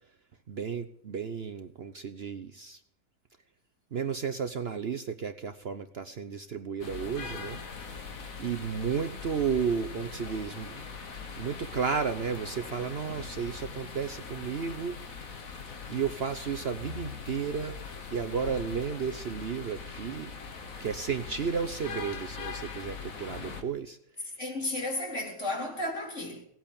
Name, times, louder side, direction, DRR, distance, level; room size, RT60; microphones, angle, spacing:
voice 1, 0.5-2.8 3.9-7.6 8.4-10.9 11.3-15.0 15.9-17.8 18.1-20.3 20.8-24.0, right 6 dB, 50° right, 0.9 m, -33 dB
Rain storm thunder Valencia street, 6.8-23.6, left 5 dB, 70° left, 2.1 m, -41 dB
voice 2, 24.4-26.4, left 1 dB, 55° left, 4.3 m, -33 dB
18.0 x 8.6 x 8.7 m
omnidirectional pair, 1.5 m